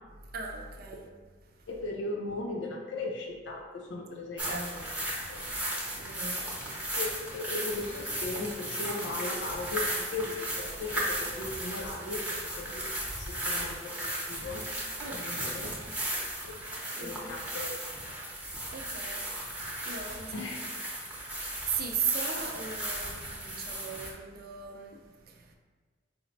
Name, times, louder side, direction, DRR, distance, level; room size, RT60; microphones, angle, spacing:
voice 1, 0.3-1.1 1.6-1.7 4.4-4.9 5.9-7.0 15.0-15.8 16.9-17.4 18.6-20.3 21.4-25.6, right 6 dB, 55° right, 0.5 m, -38 dB
voice 2, 1.7-4.8 5.3-5.4 7.0-14.7 15.1-15.8 16.4-16.6 17.0-17.8 20.3-20.6, left 3 dB, 80° left, 0.5 m, -37 dB
sound 1, 4.4-24.1, right 1 dB, 5° right, 0.7 m, -36 dB
4.2 x 2.0 x 3.9 m
head